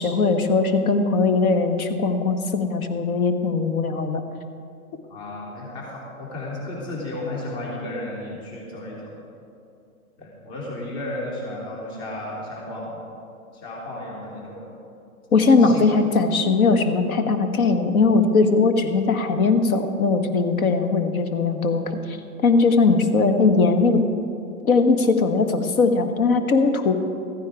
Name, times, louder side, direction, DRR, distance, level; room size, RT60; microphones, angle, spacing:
voice 1, 0.0-4.2 15.3-22.2 22.4-24.0 24.6-27.0, left 4 dB, 70° left, 8 dB, 1.4 m, -20 dB
voice 2, 5.1-9.1 10.2-13.0 13.5-14.7 15.6-15.9, left 1 dB, 45° left, -4 dB, 3.3 m, -33 dB
14.5 x 9.7 x 4.8 m, 2.6 s
hypercardioid pair, 130°, 44 cm